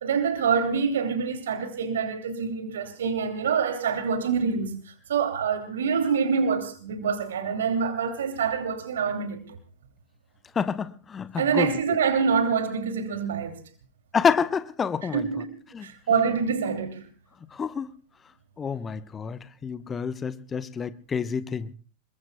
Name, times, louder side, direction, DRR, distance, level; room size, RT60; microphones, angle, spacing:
voice 1, 0.0-9.4 11.4-13.6 15.1-15.4 15.8-17.1, right 6 dB, 65° right, 2.7 m, -26 dB
voice 2, 10.5-11.7 14.1-15.3 15.7-15.9 17.5-17.9 18.6-21.7, left 6 dB, 20° left, 0.9 m, -28 dB
26.5 x 22.5 x 2.3 m
figure-of-eight pair, 90°, 0 cm